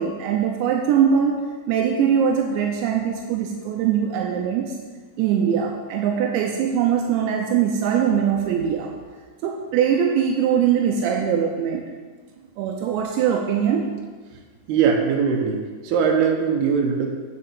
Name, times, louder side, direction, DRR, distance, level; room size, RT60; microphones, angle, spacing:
voice 1, 0.0-4.8 5.2-8.9 9.4-11.8 12.6-13.9, right 8 dB, 85° right, 2 dB, 2.5 m, -22 dB
voice 2, 14.7-17.1, right 6 dB, 70° right, 1 dB, 2.5 m, -21 dB
8.5 x 6.7 x 7.0 m, 1.5 s
omnidirectional pair, 6.0 m